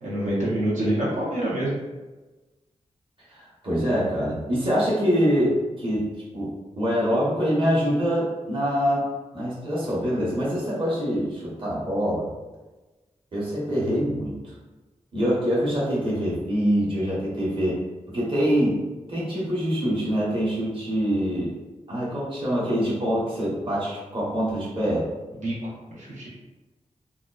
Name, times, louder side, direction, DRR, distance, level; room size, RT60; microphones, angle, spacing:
voice 1, 0.0-1.8 25.4-26.3, right 1 dB, 90° right, -7 dB, 0.9 m, -26 dB
voice 2, 3.3-9.1 9.3-12.3 13.3-14.5 15.1-21.6 21.9-25.1, equal, 45° right, -7 dB, 1.0 m, -25 dB
3.6 x 2.3 x 2.3 m, 1.2 s
wide cardioid pair, 110°, 12 cm